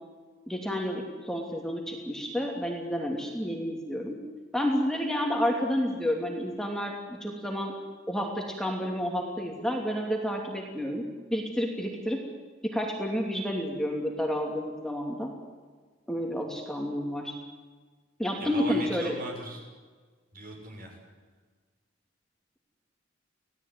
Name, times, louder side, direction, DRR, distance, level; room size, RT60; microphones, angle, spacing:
voice 1, 0.5-4.2 4.5-7.8 8.1-11.0 11.3-12.2 12.7-15.3 16.1-17.4 18.2-19.2, equal, 5° left, 1 dB, 2.7 m, -30 dB
voice 2, 18.4-19.7 20.3-20.9, right 2 dB, 50° right, 2 dB, 6.4 m, -39 dB
25.5 x 17.0 x 9.5 m, 1.4 s
head